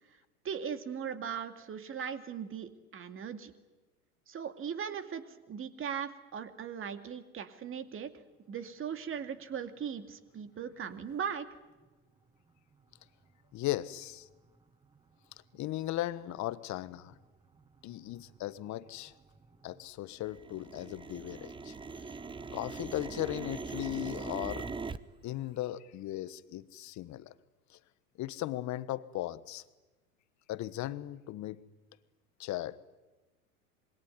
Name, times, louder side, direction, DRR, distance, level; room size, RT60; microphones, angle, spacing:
voice 1, 0.4-3.5 4.3-8.1 8.5-11.5, right 7 dB, 25° right, 8 dB, 2.4 m, -39 dB
voice 2, 13.5-14.3 15.5-17.1 17.8-19.1 19.6-21.7 22.5-24.7 25.2-27.3 28.2-29.6 30.5-31.6 32.4-32.8, left 15 dB, 40° left, 15 dB, 1.3 m, -37 dB
sound 1, 14.1-14.2 14.8-15.0 15.6-15.9 16.3-16.4 16.7-17.2 17.5-19.8 20.1-25.0, right 4 dB, 10° right, 0.9 m, -42 dB
26.5 x 22.0 x 9.7 m, 1.1 s
hypercardioid pair, 105°, 45 cm